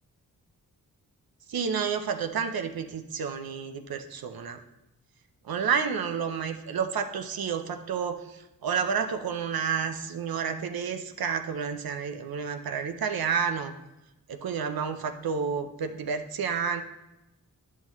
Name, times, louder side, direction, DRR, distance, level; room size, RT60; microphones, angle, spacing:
voice 1, 1.5-4.6 5.4-13.7 14.3-16.8, right 6 dB, 85° right, 7 dB, 0.6 m, -30 dB
10.5 x 5.7 x 3.0 m, 0.96 s
wide cardioid pair, 75°, 35 cm